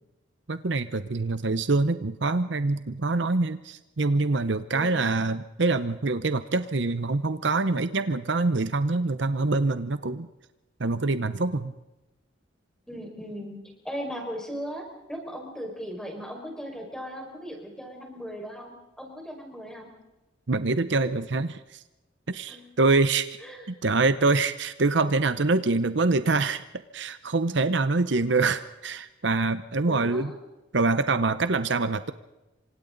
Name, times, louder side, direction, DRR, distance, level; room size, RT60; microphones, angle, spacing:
voice 1, 0.5-10.3 10.8-11.7 20.5-21.8 22.3-23.3 23.7-26.6 26.9-30.3 30.7-32.1, right 3 dB, 65° right, 12 dB, 0.8 m, -25 dB
voice 2, 4.7-5.1 12.9-13.6 13.8-19.9 22.5-22.6 23.4-23.7 29.8-30.4, equal, 5° left, 1 dB, 5.3 m, -38 dB
28.5 x 25.5 x 4.0 m, 1.0 s
head